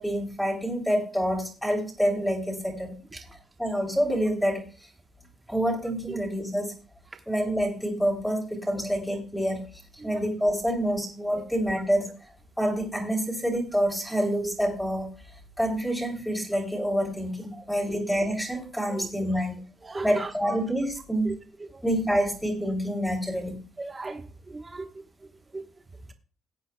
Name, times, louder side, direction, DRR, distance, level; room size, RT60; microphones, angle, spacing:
voice 1, 0.0-2.9 3.6-4.6 5.5-6.7 7.3-9.6 10.0-12.1 12.6-15.1 15.6-19.6 20.0-21.3 21.8-23.6, equal, 5° left, -1 dB, 3.2 m, -27 dB
voice 2, 17.5-18.0 18.9-19.4 19.8-20.6 21.2-21.3 21.7-21.8 23.8-24.9 25.5-25.6, right 3 dB, 25° right, 6 dB, 1.1 m, -37 dB
18.5 x 8.0 x 2.2 m, 0.38 s
cardioid pair, 90°, 0 cm